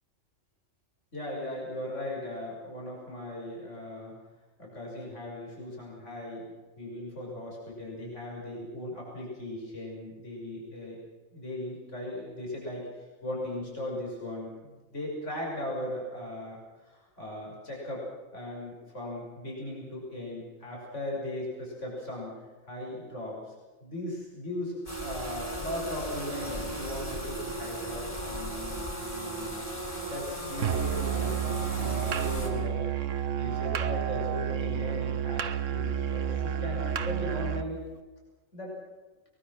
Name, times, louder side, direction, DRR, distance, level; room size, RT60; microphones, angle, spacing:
voice 1, 1.1-4.1 4.6-6.4 6.8-11.0 11.3-18.1 18.3-22.3 22.6-23.5 23.8-29.7 30.1-32.8 33.1-37.8 38.5-38.7, left 1 dB, 65° left, -3 dB, 6.7 m, -38 dB
sound 1, 24.9-32.5, right 1 dB, 25° left, 5.5 m, -36 dB
Musical instrument, 30.6-37.7, right 9 dB, 70° right, 1.3 m, -30 dB
23.0 x 21.5 x 6.2 m, 1.3 s
omnidirectional pair, 1.3 m